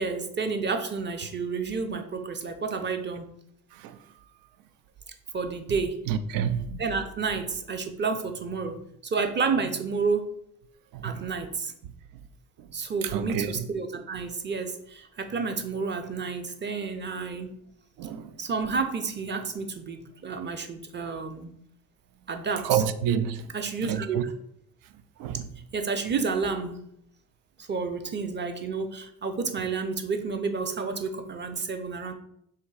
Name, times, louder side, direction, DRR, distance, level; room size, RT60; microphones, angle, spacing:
voice 1, 0.0-3.3 5.3-6.0 6.8-8.8 9.0-10.3 11.0-11.7 12.7-17.5 18.4-21.5 22.3-22.8 23.5-24.3 25.7-26.8 27.6-32.1, right 4 dB, 30° right, 0.6 m, -30 dB
voice 2, 6.1-6.8 10.9-11.2 13.1-13.5 18.0-18.3 22.6-23.4 23.8-24.2 25.2-25.5, right 8 dB, 75° right, 0.5 m, -28 dB
3.5 x 2.7 x 4.7 m
supercardioid pair, 75°, 34 cm